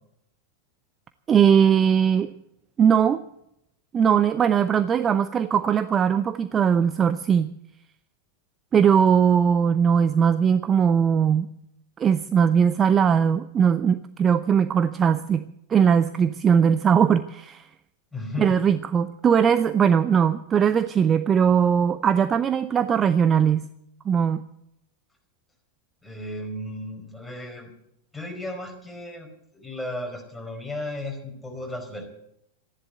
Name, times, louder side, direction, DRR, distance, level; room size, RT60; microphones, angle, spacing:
voice 1, 1.3-2.3 2.8-3.2 3.9-7.5 8.7-11.5 12.0-15.4 15.7-17.7 18.4-23.6 24.1-24.4, right 7 dB, 25° right, 12 dB, 0.6 m, -20 dB
voice 2, 18.1-18.7 26.0-27.7 28.1-32.0, left 1 dB, 5° left, 1 dB, 4.8 m, -35 dB
14.5 x 11.0 x 8.0 m, 0.77 s
figure-of-eight pair, 90°, 0 cm